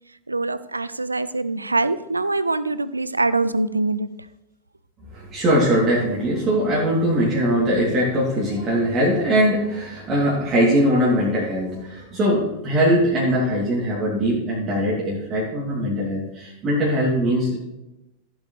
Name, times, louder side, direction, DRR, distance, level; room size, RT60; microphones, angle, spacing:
voice 1, 0.3-4.1, right 2 dB, 80° right, 16 dB, 0.5 m, -23 dB
voice 2, 5.1-17.6, equal, 25° right, -6 dB, 3.1 m, -21 dB
15.5 x 7.9 x 3.4 m, 0.94 s
figure-of-eight pair, 90°, 0 cm